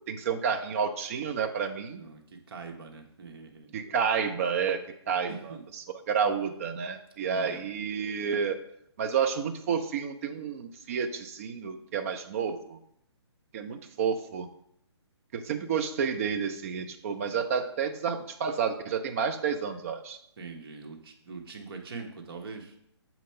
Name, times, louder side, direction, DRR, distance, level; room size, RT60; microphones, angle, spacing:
voice 1, 0.0-2.0 3.7-5.6 5.9-8.6 9.0-12.8 13.5-14.5 15.3-20.2, right 6 dB, 30° right, 6 dB, 0.5 m, -30 dB
voice 2, 1.9-3.8 5.3-5.7 7.2-7.7 20.4-22.7, right 4 dB, 55° right, 3 dB, 1.1 m, -43 dB
6.3 x 2.9 x 5.6 m, 0.73 s
hypercardioid pair, 155°, 15 cm